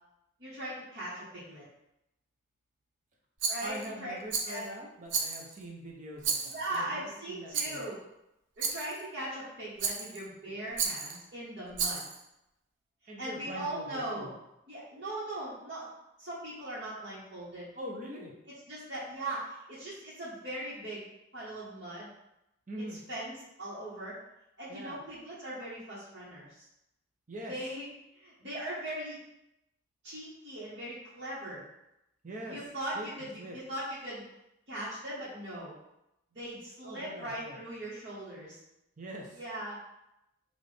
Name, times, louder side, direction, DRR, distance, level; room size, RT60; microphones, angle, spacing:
voice 1, 0.4-1.6 3.5-4.2 4.5-4.6 6.5-8.0 8.6-12.0 13.2-14.3 14.7-15.9 16.2-17.7 18.7-21.0 21.3-22.1 22.8-24.2 24.6-26.7 27.4-27.9 28.1-29.2 30.0-31.6 32.5-34.3 34.7-35.7 36.3-38.6 39.4-39.8, right 1 dB, 55° right, -12 dB, 1.2 m, -39 dB
Rattle, 3.4-3.9 4.3-4.7 5.1-5.6 6.2-6.8 7.5-7.9 8.6-9.0 9.8-10.2 10.8-11.2 11.7-12.2, right 5 dB, 75° right, 0.6 m, -33 dB
voice 2, 3.6-7.9 10.4-10.5 11.8-11.9 13.1-14.3 17.7-18.3 22.7-23.0 24.7-25.0 27.3-27.5 32.2-32.6 32.9-33.1 33.4-33.6 36.8-37.6 39.0-39.4, equal, 40° right, 0 dB, 0.6 m, -43 dB
5.8 x 2.5 x 3.3 m, 0.88 s
head